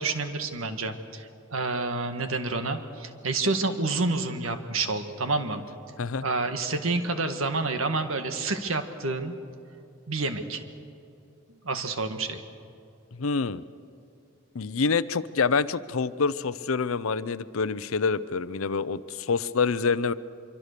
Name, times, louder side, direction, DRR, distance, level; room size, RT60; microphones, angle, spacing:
voice 1, 0.0-5.6 6.2-9.4 10.1-10.6 11.6-12.4, right 3 dB, 80° right, 7 dB, 1.7 m, -29 dB
voice 2, 13.1-13.6 14.5-20.1, left 5 dB, 85° left, 15 dB, 0.7 m, -26 dB
25.0 x 24.0 x 6.7 m, 2.6 s
head